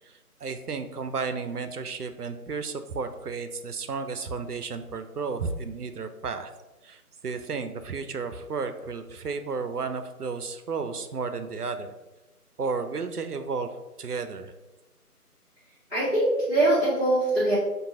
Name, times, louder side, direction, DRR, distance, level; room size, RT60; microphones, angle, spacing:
voice 1, 0.4-6.5 6.9-7.0 7.2-11.9 12.6-13.7 14.0-14.5, right 4 dB, 80° right, 9 dB, 0.6 m, -32 dB
voice 2, 15.9-17.6, right 1 dB, 40° left, -10 dB, 1.4 m, -22 dB
5.3 x 2.7 x 3.6 m, 1.1 s
figure-of-eight pair, 165°, 46 cm